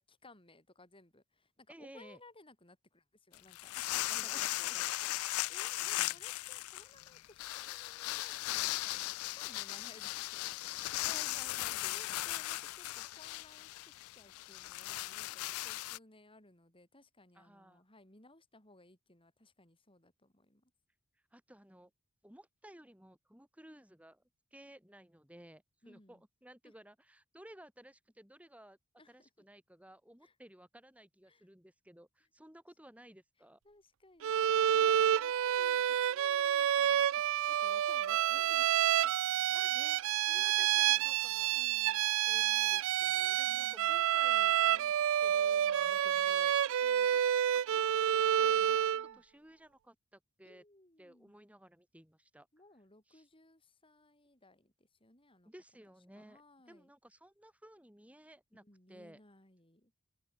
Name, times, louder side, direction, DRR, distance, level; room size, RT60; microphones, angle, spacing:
voice 1, 0.0-4.8 5.5-10.9 11.2-20.7 25.8-26.2 26.6-26.7 29.0-29.3 30.2-30.3 31.3-31.5 33.6-38.9 40.4-41.2 41.5-42.0 43.5-44.0 45.9-46.4 46.8-47.1 48.9-49.2 50.4-51.4 52.5-55.5 56.2-56.9 58.6-59.9, left 2 dB, 25° left, 7.3 m, -61 dB
voice 2, 1.7-2.2 4.2-4.7 5.8-6.2 11.0-12.5 17.3-17.8 21.1-21.9 22.2-24.2 24.5-28.8 29.1-33.6 39.0-41.5 42.1-50.6 51.0-52.5 53.1-53.3 55.4-58.6 58.9-59.2, right 1 dB, 5° right, 4.4 m, -57 dB
sound 1, 3.3-16.0, left 17 dB, 75° left, 0.3 m, -38 dB
Bowed string instrument, 34.2-49.1, right 10 dB, 60° right, 0.3 m, -29 dB
open air
head